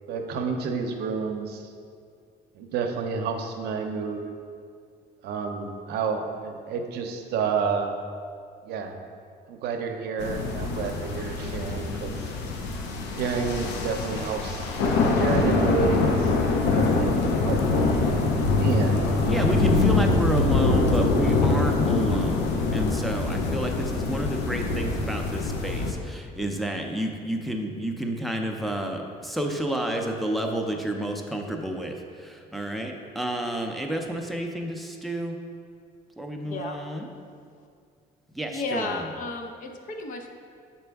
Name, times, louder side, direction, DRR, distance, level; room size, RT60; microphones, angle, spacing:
voice 1, 0.1-1.7 2.6-4.2 5.2-7.9 8.6-8.9 9.5-12.2 13.2-14.7 15.2-16.3 16.7-17.9 18.6-19.0, right 5 dB, 75° right, 4 dB, 0.6 m, -29 dB
sound 1, 10.2-25.9, left 3 dB, 90° left, 0.6 m, -24 dB
voice 2, 19.3-35.4 36.2-37.1 38.3-39.0, right 1 dB, ahead, 1 dB, 0.6 m, -30 dB
voice 3, 36.4-36.8 38.5-40.3, left 3 dB, 50° left, 3 dB, 0.6 m, -33 dB
6.7 x 4.3 x 3.4 m, 2.2 s
cardioid pair, 110°, 17 cm